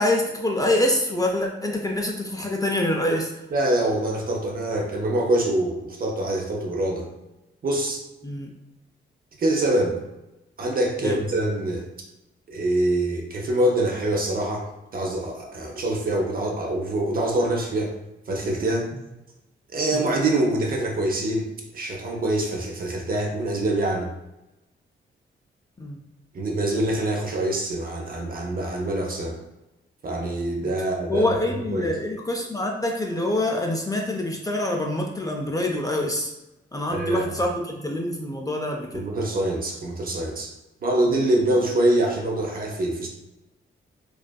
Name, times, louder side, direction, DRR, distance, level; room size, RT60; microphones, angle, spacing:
voice 1, 0.0-3.3 8.2-8.5 11.0-11.2 19.9-20.0 25.8-26.0 30.6-30.7 31.1-36.3 36.7-39.1, left 1 dB, 20° left, 1 dB, 0.4 m, -25 dB
voice 2, 3.5-7.1 7.6-8.0 9.4-10.0 10.6-11.9 12.5-17.9 18.3-18.9 19.7-24.1 26.3-29.4 30.0-31.3 31.7-31.9 36.9-37.3 38.9-40.5 40.8-43.1, right 1 dB, 45° right, 1 dB, 0.6 m, -25 dB
2.5 x 2.4 x 2.2 m, 0.96 s
cardioid pair, 70°, 20 cm